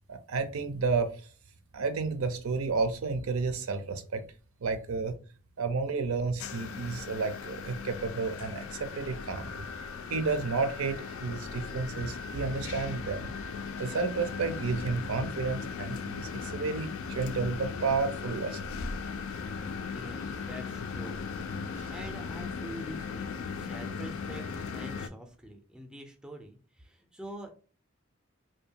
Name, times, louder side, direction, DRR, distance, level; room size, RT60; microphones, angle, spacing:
voice 1, 0.1-1.1 1.7-4.2 4.6-5.2 5.6-9.7 10.1-13.3 13.8-18.6 21.7-21.9, right 4 dB, 85° right, 0.5 m, -31 dB
sound 1, 6.4-25.1, left 5 dB, 80° left, 0.3 m, -38 dB
voice 2, 19.9-21.2 21.9-27.5, equal, 5° right, 0.4 m, -45 dB
2.7 x 2.2 x 2.7 m
head